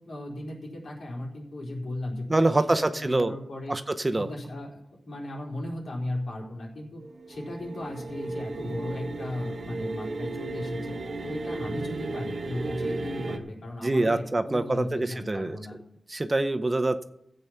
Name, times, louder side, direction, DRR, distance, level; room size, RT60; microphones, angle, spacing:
voice 1, 0.0-2.6 2.9-3.8 4.1-4.8 5.1-7.0 7.3-11.0 11.2-15.8, left 1 dB, 75° left, -2 dB, 4.0 m, -36 dB
voice 2, 2.3-3.3 3.7-4.3 13.8-15.6 16.1-17.0, right 2 dB, 30° right, 9 dB, 0.7 m, -25 dB
sound 1, 7.0-13.4, right 2 dB, 65° right, 1.2 m, -35 dB
15.5 x 7.9 x 5.8 m, 0.77 s
wide cardioid pair, 80°, 0 cm